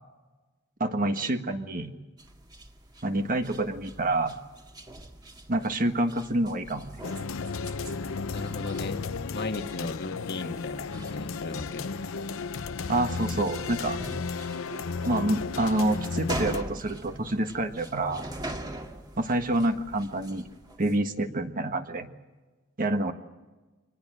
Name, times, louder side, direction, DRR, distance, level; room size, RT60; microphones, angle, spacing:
voice 1, 0.8-1.9 3.0-4.4 5.5-7.0 12.9-14.0 15.0-18.2 19.2-20.5 20.8-22.1 22.8-23.1, right 1 dB, 45° right, 6 dB, 1.7 m, -27 dB
sound 1, 2.2-21.0, right 1 dB, 20° right, 2.0 m, -43 dB
sound 2, 7.0-16.6, left 4 dB, 75° left, 0.7 m, -34 dB
voice 2, 8.3-12.0, left 2 dB, 55° left, 5 dB, 1.6 m, -36 dB
25.5 x 20.0 x 7.9 m, 1.2 s
head